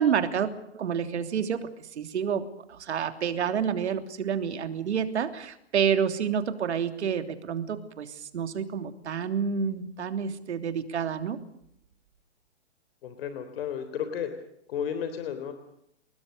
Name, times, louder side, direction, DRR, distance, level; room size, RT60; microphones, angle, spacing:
voice 1, 0.0-11.4, right 7 dB, 70° right, 9 dB, 3.3 m, -29 dB
voice 2, 13.0-14.3 14.7-15.5, left 8 dB, 55° left, 9 dB, 3.8 m, -33 dB
29.5 x 20.0 x 6.7 m, 0.74 s
hypercardioid pair, 145°, 34 cm